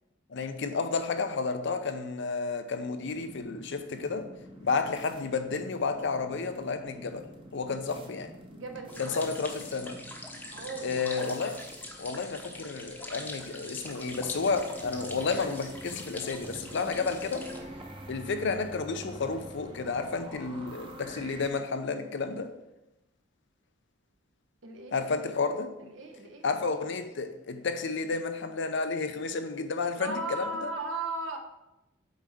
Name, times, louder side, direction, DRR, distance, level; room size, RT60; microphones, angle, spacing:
voice 1, 0.3-4.3 4.6-7.3 7.5-8.3 9.0-10.0 10.8-11.6 12.0-17.5 18.1-22.5 24.9-25.7 26.4-30.7, left 4 dB, 65° left, 0.6 m, -31 dB
sound 1, 3.0-21.5, equal, 25° right, 0.9 m, -47 dB
voice 2, 8.5-9.3 10.5-11.0 24.6-25.0 25.8-26.5 30.0-31.4, right 2 dB, 70° right, 1.1 m, -37 dB
sound 2, 8.9-17.6, left 1 dB, 10° left, 0.9 m, -44 dB
7.9 x 4.0 x 4.9 m
head